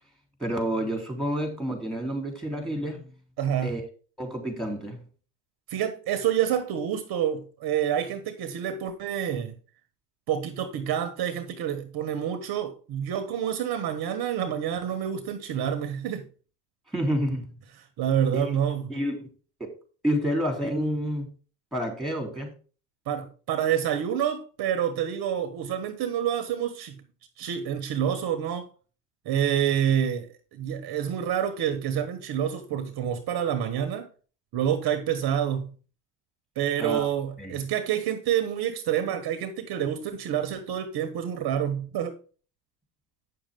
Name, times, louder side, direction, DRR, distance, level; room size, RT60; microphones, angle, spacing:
voice 1, 0.4-3.1 3.6-3.8 4.2-5.0 16.9-17.5 18.3-18.5 18.9-19.3 19.6-19.7 20.0-21.3 21.7-22.5 36.8-37.1 37.4-37.6, equal, ahead, 3.4 m, -29 dB
voice 2, 3.4-3.8 5.7-9.5 10.3-16.3 18.0-18.9 23.1-27.0 27.4-28.7 29.2-34.1 34.5-35.7 36.5-42.2, right 9 dB, 50° right, 1.4 m, -28 dB
8.7 x 6.7 x 3.6 m
supercardioid pair, 100°, 48 cm